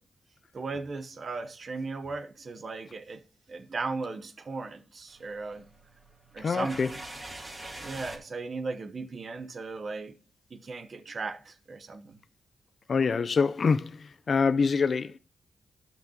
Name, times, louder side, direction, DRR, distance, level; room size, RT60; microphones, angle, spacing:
voice 1, 0.5-3.2 3.5-5.6 6.3-7.0 7.8-10.2 10.5-12.2, right 3 dB, 50° right, 0.9 m, -37 dB
sound 1, 5.1-8.2, right 1 dB, 25° right, 2.6 m, -43 dB
voice 2, 6.4-6.9 12.9-15.2, left 5 dB, 55° left, 0.5 m, -25 dB
13.0 x 5.9 x 2.8 m
cardioid pair, 70°, 0 cm